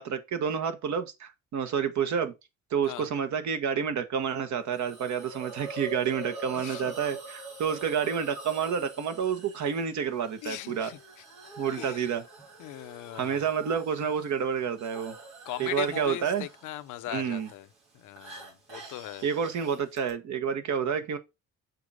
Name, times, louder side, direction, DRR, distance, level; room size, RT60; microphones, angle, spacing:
voice 1, 0.0-2.3 2.7-10.9 11.6-12.2 13.1-15.2 15.6-16.5 17.1-17.5 19.2-21.2, right 7 dB, 70° right, 1.4 m, -29 dB
Hiss, 4.7-20.1, right 2 dB, 85° right, 3.9 m, -46 dB
voice 2, 6.5-6.9 10.4-11.0 11.7-12.1 12.6-13.4 15.4-17.7 17.9-19.2, left 14 dB, 80° left, 0.7 m, -39 dB
6.7 x 4.4 x 5.0 m
cardioid pair, 90°, 30 cm